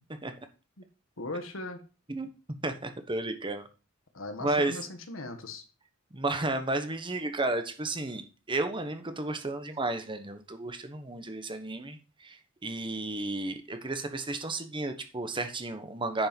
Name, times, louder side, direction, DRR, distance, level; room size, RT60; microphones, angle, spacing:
voice 1, 1.2-1.8 4.1-5.6, left 2 dB, 85° left, 6 dB, 1.6 m, -38 dB
voice 2, 2.6-3.6 4.4-4.8 6.1-8.2 8.5-16.3, right 2 dB, 25° right, 7 dB, 1.2 m, -32 dB
10.0 x 5.4 x 5.3 m, 0.34 s
head